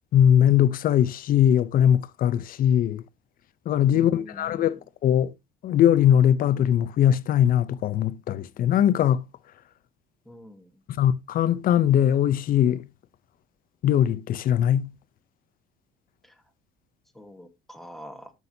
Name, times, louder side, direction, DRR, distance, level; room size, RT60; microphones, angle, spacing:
voice 1, 0.1-3.0 3.7-5.3 5.6-9.2 11.0-12.8 13.8-14.9, left 10 dB, 45° left, 0.6 m, -21 dB
voice 2, 3.9-4.8 10.2-10.8 16.2-16.4 17.1-18.3, equal, ahead, 1.3 m, -45 dB
13.5 x 6.2 x 2.7 m
cardioid pair, 160°, 20 cm